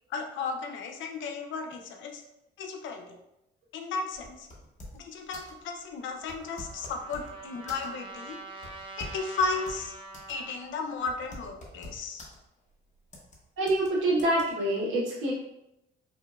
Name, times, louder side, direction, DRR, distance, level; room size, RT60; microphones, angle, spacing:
voice 1, 0.1-2.2 2.6-3.2 3.7-4.5 4.9-8.4 9.0-9.9 10.3-12.3, left 4 dB, 75° left, 4 dB, 0.6 m, -34 dB
sound 1, 4.1-5.1 5.3-5.6 6.2-7.4 7.7-8.1 8.6-10.4 10.7-10.8 11.1-12.4 13.1-13.4 13.7-13.9 14.2-14.4, left 1 dB, 35° left, 0.9 m, -45 dB
Trumpet, 6.0-10.7, right 3 dB, 25° right, 0.6 m, -45 dB
voice 2, 13.6-15.3, right 1 dB, 75° right, -5 dB, 0.9 m, -26 dB
4.8 x 2.1 x 2.3 m, 0.87 s
cardioid pair, 90°, 20 cm